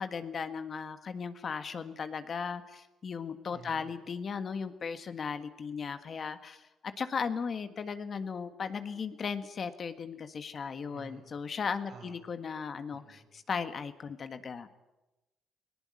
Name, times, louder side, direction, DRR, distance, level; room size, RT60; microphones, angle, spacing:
voice 1, 0.0-6.7 7.0-14.7, left 6 dB, 45° left, 10 dB, 1.6 m, -36 dB
voice 2, 3.5-3.9 10.9-11.2 11.9-12.1 12.9-13.3, right 6 dB, 75° right, -2 dB, 5.8 m, -51 dB
19.0 x 18.5 x 9.6 m, 1.0 s
cardioid pair, 90°, 0 cm